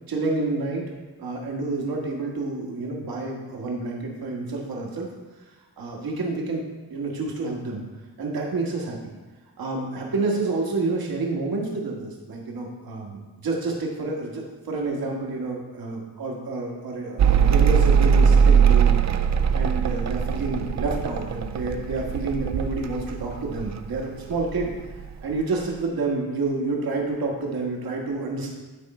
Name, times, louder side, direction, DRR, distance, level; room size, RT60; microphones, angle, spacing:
voice 1, 0.1-0.8 1.2-5.1 5.8-6.6 6.9-7.8 8.2-9.1 9.6-19.3 19.5-24.7 25.2-28.5, right 3 dB, 75° right, -1 dB, 1.6 m, -29 dB
Mechanical fan, 17.2-24.1 24.3-25.1, right 7 dB, 50° right, 0.5 m, -20 dB
10.0 x 4.5 x 4.3 m, 1.2 s
wide cardioid pair, 100°, 36 cm